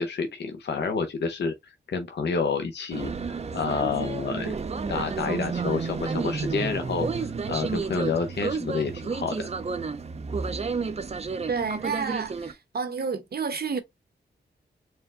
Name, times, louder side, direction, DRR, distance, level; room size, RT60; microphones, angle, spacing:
voice 1, 0.0-3.1 3.5-4.6 4.9-9.4, left 5 dB, 65° left, 0.7 m, -29 dB
sound 1, 2.9-12.5, right 4 dB, 35° right, 0.5 m, -31 dB
voice 2, 11.5-13.8, right 5 dB, 55° right, 1.0 m, -30 dB
4.3 x 2.1 x 3.7 m
wide cardioid pair, 100°, 19 cm